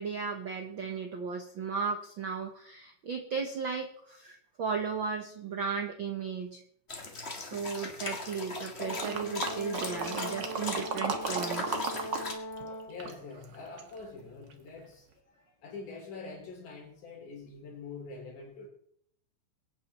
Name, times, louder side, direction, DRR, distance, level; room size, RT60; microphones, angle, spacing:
voice 1, 0.0-6.6 7.4-11.8, right 5 dB, 70° right, 4 dB, 1.2 m, -35 dB
sound 1, 6.9-10.8 11.2-12.3, left 3 dB, 25° left, 1.5 m, -39 dB
Brass instrument, 8.8-13.0, equal, 50° left, 1.8 m, -40 dB
sound 2, 9.0-12.3 12.5-14.0 14.5-14.6, right 5 dB, 45° right, 1.6 m, -35 dB
voice 2, 12.8-18.7, left 4 dB, 75° left, 0 dB, 5.2 m, -45 dB
23.0 x 8.9 x 4.2 m, 0.68 s
omnidirectional pair, 3.7 m